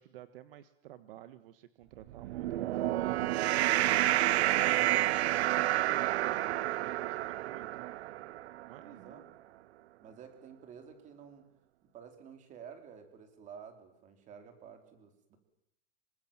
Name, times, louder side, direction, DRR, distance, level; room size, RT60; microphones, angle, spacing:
voice 1, 0.0-4.1 4.5-7.9 8.6-9.2, right 13 dB, 60° right, 12 dB, 1.6 m, -52 dB
sound 1, 2.1-8.7, right 15 dB, 80° right, 0.9 m, -29 dB
voice 2, 8.8-9.2 10.0-11.5 11.8-15.4, right 7 dB, 25° right, 7 dB, 4.0 m, -51 dB
26.5 x 24.0 x 7.5 m, 0.80 s
supercardioid pair, 175°, 32 cm